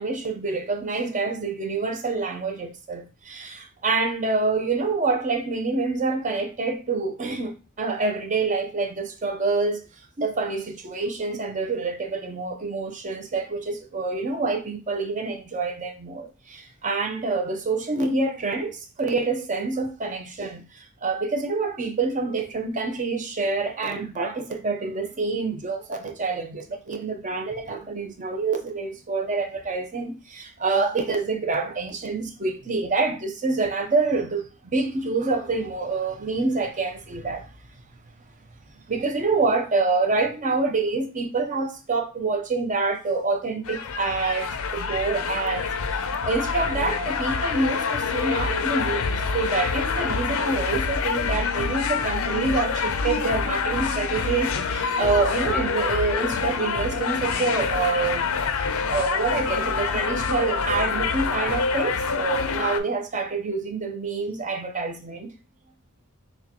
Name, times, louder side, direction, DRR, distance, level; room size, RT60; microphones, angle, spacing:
voice 1, 0.0-9.8 10.2-34.5 34.7-37.5 38.9-65.3, right 3 dB, 35° right, 0.7 m, -27 dB
sound 1, 43.6-62.8, left 5 dB, 70° left, 0.5 m, -26 dB
6.2 x 2.3 x 2.9 m
head